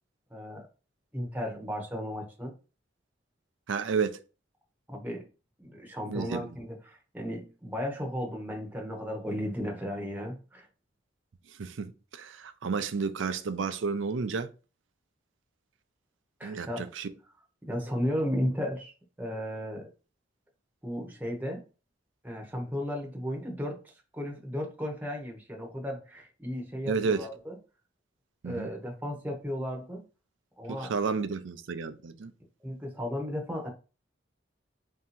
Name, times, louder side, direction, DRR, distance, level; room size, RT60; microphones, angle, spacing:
voice 1, 0.3-0.7 1.1-2.5 4.9-5.2 5.6-10.7 16.4-16.9 17.6-18.9 19.2-19.9 20.8-21.6 22.2-23.8 24.1-27.6 28.4-30.0 30.6-30.9 32.6-33.7, equal, 10° right, 1.0 m, -34 dB
voice 2, 3.7-4.2 6.1-6.5 11.6-14.5 16.4-17.1 26.8-27.3 28.4-28.7 30.7-32.3, right 5 dB, 75° right, 0.5 m, -31 dB
3.5 x 2.8 x 4.1 m
head